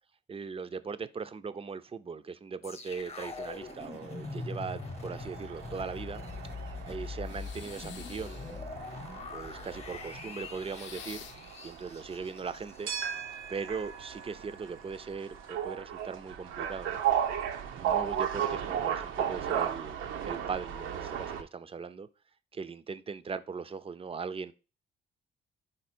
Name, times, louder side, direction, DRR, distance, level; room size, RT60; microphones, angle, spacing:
voice 1, 0.3-6.2 6.8-9.1 9.3-11.2 11.6-12.9 13.5-17.0 17.7-20.0 20.3-22.1 22.5-24.5, right 5 dB, 30° right, 0.5 m, -39 dB
sound 1, 2.6-13.8 14.1-14.3, left 4 dB, 30° left, 1.0 m, -43 dB
sound 2, 3.1-21.4, right 9 dB, 85° right, 0.8 m, -36 dB
sound 3, 7.2-8.6 10.7-11.5, left 9 dB, 70° left, 0.6 m, -48 dB
5.2 x 4.2 x 4.3 m
cardioid pair, 90°, 20 cm